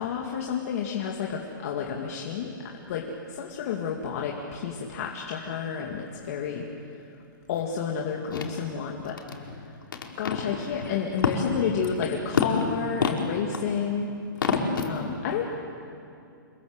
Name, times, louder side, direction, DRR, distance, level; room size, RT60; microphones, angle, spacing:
voice 1, 0.0-2.5 2.9-6.6 7.5-9.2 10.2-12.5 12.8-13.0 13.3-14.1 15.0-15.4, left 7 dB, 45° left, 0 dB, 2.3 m, -30 dB
voice 2, 9.2-9.6 9.9-10.9 11.2-11.5 12.3-12.4 13.0-13.2 14.4-15.1, left 5 dB, 80° left, 0 dB, 4.8 m, -28 dB
27.5 x 21.0 x 8.1 m, 2.5 s
hypercardioid pair, 160°, 11 cm